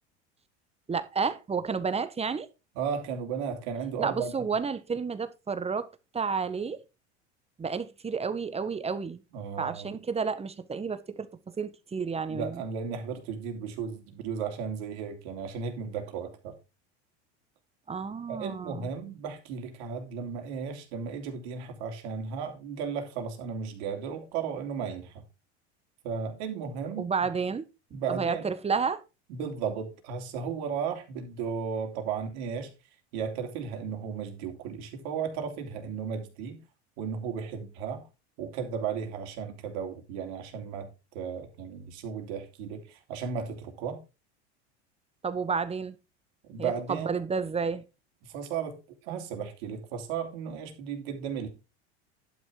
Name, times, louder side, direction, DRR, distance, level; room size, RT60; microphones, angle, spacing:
voice 1, 0.9-2.5 4.0-5.9 6.1-6.8 7.6-9.2 9.6-12.6 17.9-18.9 27.0-27.6 28.1-29.0 45.2-45.9 46.6-47.8, right 5 dB, 20° right, 1.3 m, -31 dB
voice 2, 2.7-4.5 9.3-9.9 12.3-16.5 18.3-25.2 26.0-27.1 27.9-28.5 29.3-32.7 33.1-36.6 37.0-38.0 38.4-40.9 41.1-44.0 46.5-47.1 48.3-48.8 49.0-51.5, right 6 dB, 70° right, 3.3 m, -35 dB
11.5 x 6.1 x 4.7 m
hypercardioid pair, 100°, 34 cm